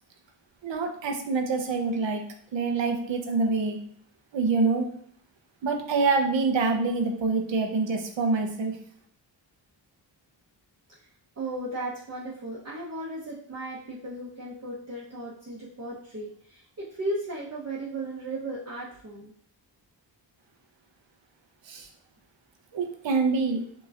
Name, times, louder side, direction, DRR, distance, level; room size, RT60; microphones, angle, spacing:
voice 1, 0.6-2.2 2.5-3.8 4.3-4.8 5.6-8.7 21.7-21.9 22.7-23.6, right 4 dB, 75° right, 4 dB, 0.8 m, -26 dB
voice 2, 11.4-19.3, right 1 dB, 35° right, -7 dB, 1.0 m, -36 dB
5.8 x 3.0 x 2.5 m, 0.62 s
wide cardioid pair, 95°, 45 cm